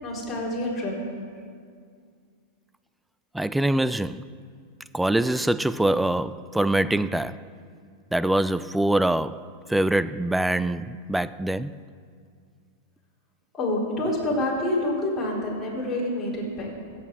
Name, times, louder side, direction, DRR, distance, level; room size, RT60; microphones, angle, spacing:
voice 1, 0.0-1.0 13.5-16.7, left 1 dB, 20° left, 4.4 m, -27 dB
voice 2, 3.3-4.2 4.9-7.4 8.1-11.8, right 1 dB, 5° right, 0.4 m, -24 dB
15.0 x 8.4 x 7.7 m
hypercardioid pair, 115°, 0 cm